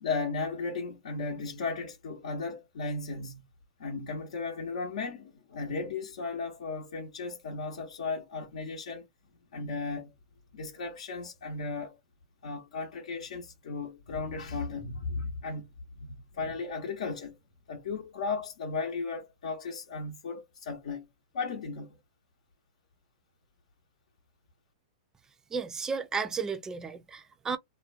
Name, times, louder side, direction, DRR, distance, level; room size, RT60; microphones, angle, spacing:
voice 1, 0.0-3.4 3.8-9.1 9.5-10.1 10.5-12.0 12.4-15.7 16.0-17.4 17.7-21.1 21.3-21.9, left 4 dB, 70° left, 0.8 m, -35 dB
voice 2, 25.5-27.6, right 5 dB, 15° right, 0.5 m, -33 dB
2.4 x 2.1 x 2.4 m
hypercardioid pair, 120°, 4 cm